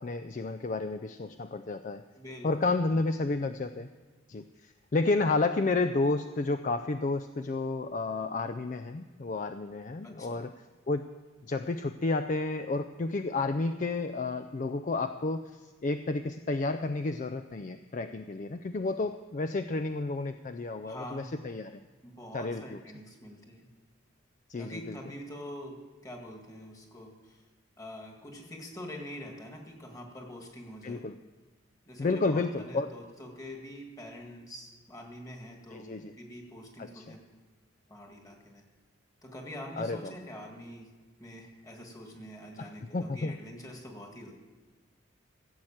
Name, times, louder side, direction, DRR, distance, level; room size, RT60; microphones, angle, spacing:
voice 1, 0.0-2.0 2.4-3.9 4.3-10.5 10.9-11.1 11.5-15.5 15.8-21.8 22.3-22.8 24.5-25.0 30.8-31.2 32.0-32.9 35.7-36.1 36.8-37.0 39.8-40.1 42.6-42.7 42.9-43.4, left 3 dB, 40° left, 9 dB, 0.4 m, -31 dB
voice 2, 2.2-3.0 10.0-10.4 20.8-21.3 22.0-23.7 24.6-27.4 27.8-31.1 31.9-37.3 37.9-38.6 39.2-40.9 41.2-44.3, equal, 15° left, 2 dB, 1.8 m, -45 dB
16.0 x 7.9 x 7.3 m, 1.3 s
head